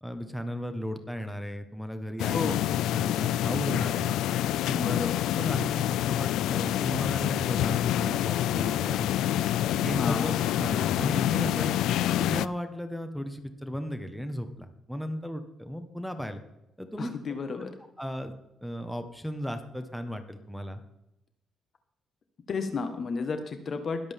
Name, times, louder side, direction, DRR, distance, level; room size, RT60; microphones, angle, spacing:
voice 1, 0.0-2.5 2.9-4.1 4.7-5.0 5.3-9.4 9.7-11.7 12.2-16.4 16.8-17.1 18.0-20.8, equal, ahead, 7 dB, 1.4 m, -35 dB
sound 1, 2.2-12.5, left 12 dB, 85° left, 0.3 m, -27 dB
voice 2, 2.3-2.6 4.7-5.2 10.0-10.3 17.0-17.7 22.5-24.0, left 4 dB, 45° left, 7 dB, 1.4 m, -32 dB
21.0 x 8.0 x 3.6 m, 0.89 s
cardioid pair, 90°, 0 cm